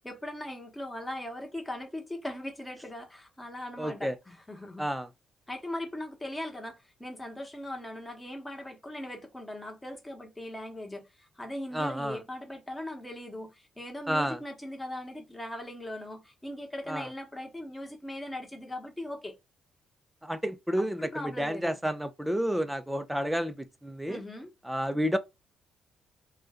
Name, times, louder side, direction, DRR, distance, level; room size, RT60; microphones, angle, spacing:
voice 1, 0.0-4.9 5.5-19.3 20.7-21.8 24.1-24.5, left 1 dB, 10° left, 1.0 m, -39 dB
voice 2, 3.8-4.1 4.8-5.1 11.7-12.2 14.1-14.4 16.9-17.1 20.2-23.5 23.8-24.2 24.6-25.2, equal, 5° right, 0.5 m, -30 dB
2.5 x 2.3 x 3.4 m
cardioid pair, 90°, 0 cm